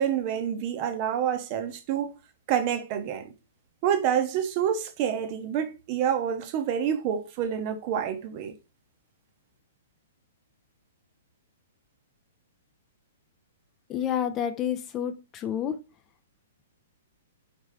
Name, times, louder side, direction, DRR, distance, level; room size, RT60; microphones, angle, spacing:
voice 1, 0.0-2.1 2.5-3.3 3.8-8.5, right 9 dB, 35° right, 0.7 m, -27 dB
voice 2, 13.9-15.8, left 9 dB, 25° left, 0.4 m, -29 dB
4.3 x 3.4 x 3.3 m
figure-of-eight pair, 110°, 0 cm